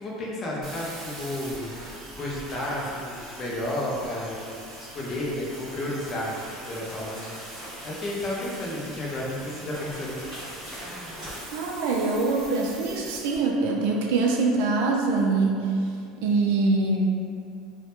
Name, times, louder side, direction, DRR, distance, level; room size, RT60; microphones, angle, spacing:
voice 1, 0.0-1.7 2.1-4.6 4.9-10.3 10.8-11.4, left 1 dB, 25° left, -4 dB, 0.4 m, -32 dB
sound 1, 0.6-13.4, right 1 dB, 45° right, 0.6 m, -44 dB
sound 2, 1.8-13.3, equal, 10° right, 1.1 m, -44 dB
voice 2, 11.5-15.7 16.2-17.0, right 3 dB, 75° right, 0 dB, 0.3 m, -24 dB
2.1 x 2.1 x 2.8 m, 2.4 s
cardioid pair, 165°, 0 cm